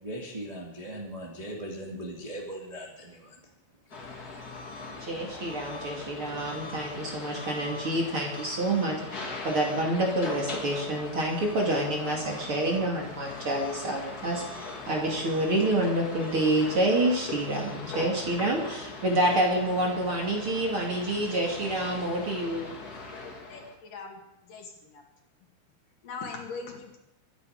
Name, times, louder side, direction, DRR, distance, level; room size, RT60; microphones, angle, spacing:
voice 1, 0.0-3.4, right 1 dB, 15° right, -2 dB, 1.4 m, -39 dB
sound 1, 3.9-23.7, left 3 dB, 30° left, 1.9 m, -40 dB
voice 2, 5.0-14.4 14.9-22.7, right 1 dB, 40° right, -1 dB, 2.9 m, -28 dB
voice 3, 23.5-25.0 26.0-27.0, left 4 dB, 60° left, 1 dB, 3.8 m, -41 dB
25.0 x 10.5 x 5.0 m, 0.92 s
omnidirectional pair, 4.4 m